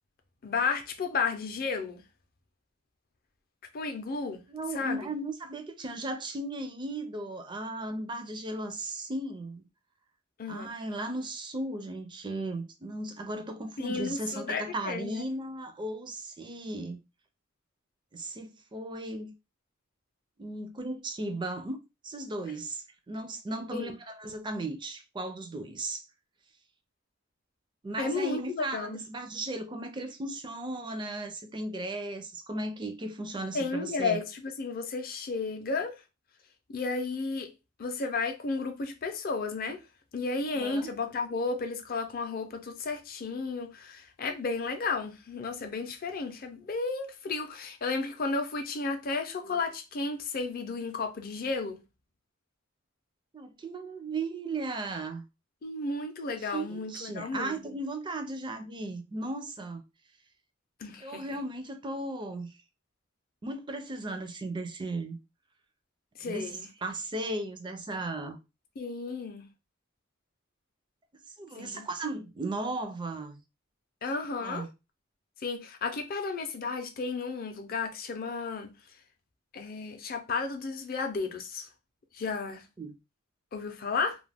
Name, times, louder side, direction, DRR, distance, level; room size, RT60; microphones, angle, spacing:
voice 1, 0.4-2.0 3.7-4.4 4.7-5.1 10.4-10.7 13.8-15.2 23.7-24.0 28.0-29.0 33.5-35.9 36.7-37.5 37.8-39.8 40.1-51.8 55.6-57.6 60.8-61.2 66.2-66.7 68.8-69.5 71.6-71.9 74.0-74.7 75.4-78.7 79.5-81.7 82.1-82.7 83.5-84.2, left 4 dB, 45° left, 0.5 m, -33 dB
voice 2, 4.5-9.6 10.5-17.0 18.1-19.3 20.4-21.8 22.0-26.0 27.8-34.2 40.6-40.9 53.3-55.3 56.4-59.8 61.0-62.5 63.4-65.2 66.2-68.4 71.4-73.4 74.4-74.7 82.8-82.9, right 2 dB, 25° right, 0.4 m, -36 dB
2.3 x 2.1 x 3.3 m
head